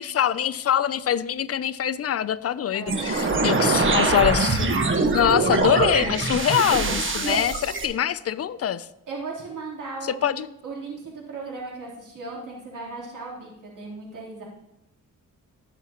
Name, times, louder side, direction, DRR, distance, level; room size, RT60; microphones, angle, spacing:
voice 1, 0.0-4.7 5.1-8.9 10.0-10.5, left 9 dB, 45° left, 16 dB, 0.5 m, -24 dB
voice 2, 2.7-3.1 3.6-4.4 9.1-14.4, right 3 dB, 70° right, -4 dB, 3.5 m, -35 dB
sound 1, 2.9-7.9, right 3 dB, 40° right, 1.3 m, -23 dB
15.0 x 6.0 x 3.0 m, 0.88 s
cardioid pair, 80°, 33 cm